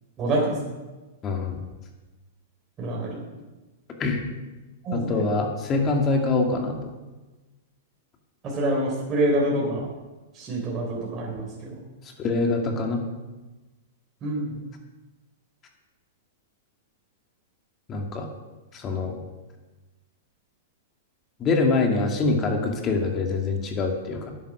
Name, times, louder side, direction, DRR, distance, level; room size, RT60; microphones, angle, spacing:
voice 1, 0.2-0.7 2.8-3.2 4.8-5.2 8.4-9.9 10.3-11.8 14.2-14.6, right 1 dB, 30° right, -3 dB, 3.7 m, -26 dB
voice 2, 1.2-1.6 4.0-4.2 4.9-6.9 12.2-13.0 17.9-18.3 18.7-19.2 21.4-24.3, left 3 dB, 30° left, 2 dB, 2.3 m, -24 dB
10.5 x 9.7 x 6.3 m, 1.2 s
hypercardioid pair, 120°, 0 cm